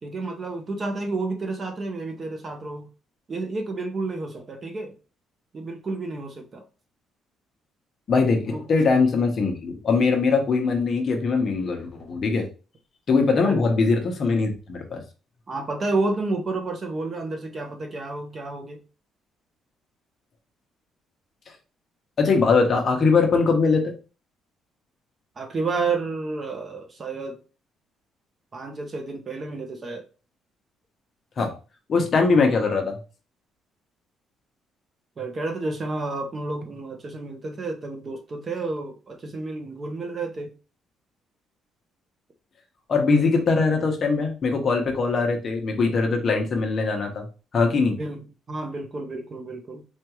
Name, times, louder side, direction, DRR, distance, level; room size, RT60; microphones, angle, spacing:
voice 1, 0.0-2.9 3.3-4.9 5.5-6.6 8.5-8.6 13.4-13.7 15.5-18.8 25.4-27.4 28.5-30.0 35.2-40.5 48.0-49.8, right 3 dB, 30° right, 0.6 m, -30 dB
voice 2, 8.1-12.4 13.1-15.0 22.2-23.9 31.4-31.5 31.9-33.0 42.9-47.2 47.5-48.0, left 4 dB, 35° left, 0.8 m, -21 dB
4.3 x 2.3 x 3.0 m
cardioid pair, 155°, 0 cm